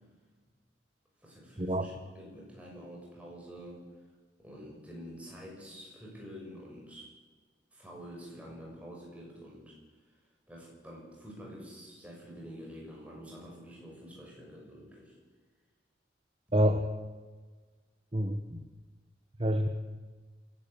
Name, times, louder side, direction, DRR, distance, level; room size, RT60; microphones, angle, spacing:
voice 1, 1.2-3.8 4.4-7.1 7.7-9.8 10.1-10.2 10.5-15.2, equal, 5° right, -2 dB, 6.6 m, -47 dB
voice 2, 16.5-16.8 18.1-18.6 19.4-19.7, equal, 30° right, 7 dB, 1.0 m, -27 dB
28.5 x 12.0 x 8.3 m, 1.4 s
head